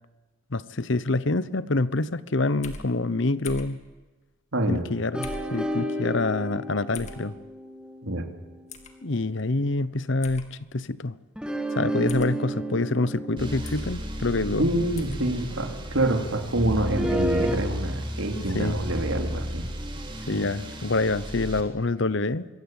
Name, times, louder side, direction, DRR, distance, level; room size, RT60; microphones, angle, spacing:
voice 1, 0.5-3.8 4.7-7.4 9.0-11.2 11.7-14.7 18.5-18.8 20.3-22.5, left 2 dB, 60° left, 17 dB, 0.9 m, -26 dB
sound 1, 2.6-2.9 3.4-3.8 5.2-5.5 6.9-7.2 8.7-8.9 10.2-10.5 12.1-12.3 13.6-13.9 14.9-15.2, left 3 dB, 35° left, 2.5 m, -39 dB
voice 2, 4.5-4.8 8.0-8.3 14.6-19.6, right 1 dB, 80° right, 5 dB, 3.1 m, -26 dB
sound 2, 5.1-9.7 11.4-15.5 16.9-17.6, right 1 dB, 5° right, 1.8 m, -32 dB
sound 3, 13.4-21.6, equal, 25° right, 3.3 m, -33 dB
25.5 x 21.0 x 9.0 m, 1.3 s
head